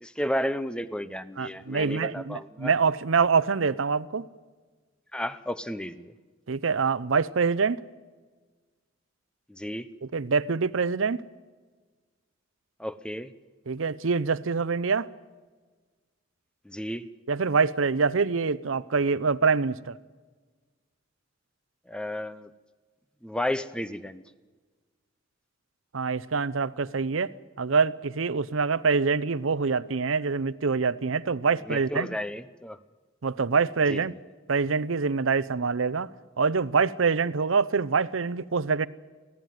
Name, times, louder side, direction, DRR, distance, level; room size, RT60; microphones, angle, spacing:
voice 1, 0.0-2.7 5.1-6.1 9.5-9.9 12.8-13.3 16.6-17.1 21.9-22.5 23.2-24.2 31.7-32.8 33.9-34.2, left 1 dB, 5° left, 0.7 m, -32 dB
voice 2, 1.4-4.2 6.5-7.8 10.1-11.2 13.7-15.1 17.3-20.0 25.9-32.1 33.2-34.1 34.5-36.1 36.4-38.9, right 5 dB, 85° right, 0.7 m, -25 dB
24.0 x 16.0 x 9.3 m
head